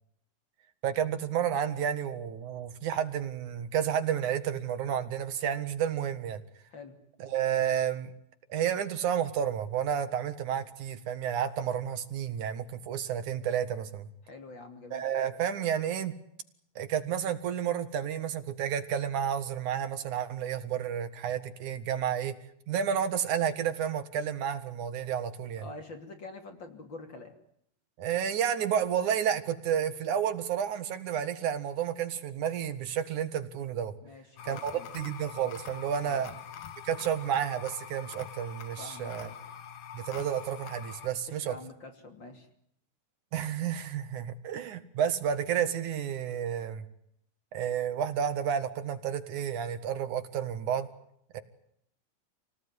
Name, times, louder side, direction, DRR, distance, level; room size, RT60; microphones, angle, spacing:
voice 1, 0.8-6.4 7.2-8.1 8.5-14.1 14.9-16.1 16.8-22.4 22.7-25.6 28.0-33.9 34.4-36.3 36.8-39.3 39.9-41.5 43.3-46.8 47.5-50.9 51.3-51.4, right 9 dB, 75° right, 10 dB, 3.2 m, -31 dB
voice 2, 14.2-15.0 25.6-27.3 34.0-34.9 36.0-36.4 38.8-39.4 41.3-42.5, left 3 dB, 40° left, 6 dB, 3.5 m, -46 dB
sound 1, 34.4-41.1, left 8 dB, 65° left, 2.5 m, -45 dB
28.5 x 18.5 x 9.7 m, 0.72 s
omnidirectional pair, 3.5 m